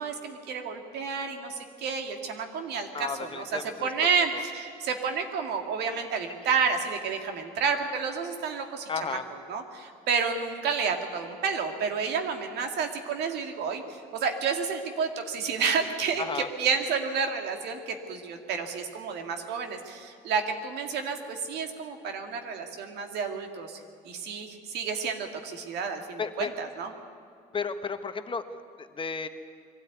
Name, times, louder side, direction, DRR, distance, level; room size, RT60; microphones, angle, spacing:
voice 1, 0.0-13.8 14.1-23.8 24.0-26.9, right 5 dB, 80° right, 5 dB, 2.1 m, -30 dB
voice 2, 2.9-3.9 4.3-4.4 8.9-9.3 16.2-16.5 26.2-26.5 27.5-28.4 28.8-29.3, left 5 dB, 30° left, 9 dB, 1.1 m, -33 dB
22.0 x 13.0 x 9.4 m, 2.5 s
cardioid pair, 110°, 17 cm